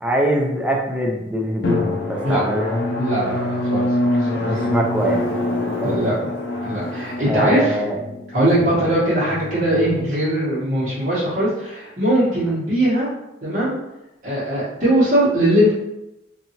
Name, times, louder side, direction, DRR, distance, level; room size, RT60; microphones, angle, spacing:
voice 1, 0.0-2.8 4.4-5.3 5.8-6.0 7.3-8.0, right 1 dB, 5° right, -1 dB, 0.4 m, -23 dB
Drum, 1.6-10.9, left 1 dB, 65° left, 0.5 m, -25 dB
voice 2, 3.0-3.8 4.2-4.6 5.8-6.1 6.6-7.8 8.3-13.1 13.4-13.7 14.2-15.7, right 1 dB, 45° right, -11 dB, 1.0 m, -20 dB
2.7 x 2.5 x 2.8 m, 0.92 s
head